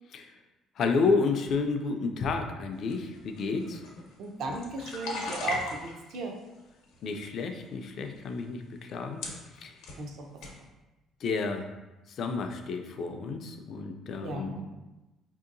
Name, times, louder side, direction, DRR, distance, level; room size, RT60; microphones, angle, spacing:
voice 1, 0.8-3.8 7.0-9.2 9.5-9.7 11.2-11.7 12.1-14.5, left 4 dB, 45° left, 5 dB, 0.3 m, -30 dB
sound 1, 2.9-6.2 6.8-7.4 8.2-8.3 8.9-9.0 9.2-10.0 10.4-10.6, left 3 dB, 90° left, 0.7 m, -38 dB
voice 2, 4.2-6.4 10.0-10.3 14.2-14.7, right 3 dB, 60° right, 2 dB, 0.5 m, -36 dB
4.5 x 2.7 x 2.5 m, 1.1 s
cardioid pair, 165°, 0 cm